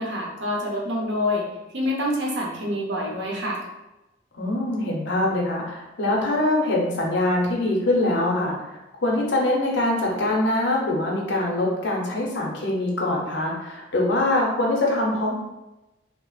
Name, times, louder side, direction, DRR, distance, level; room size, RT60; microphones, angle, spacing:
voice 1, 0.0-1.5 1.7-3.6, left 1 dB, 70° right, -2 dB, 0.7 m, -26 dB
voice 2, 4.3-8.6 9.0-15.3, left 1 dB, 70° left, -2 dB, 0.7 m, -23 dB
2.8 x 2.0 x 3.1 m, 1.0 s
head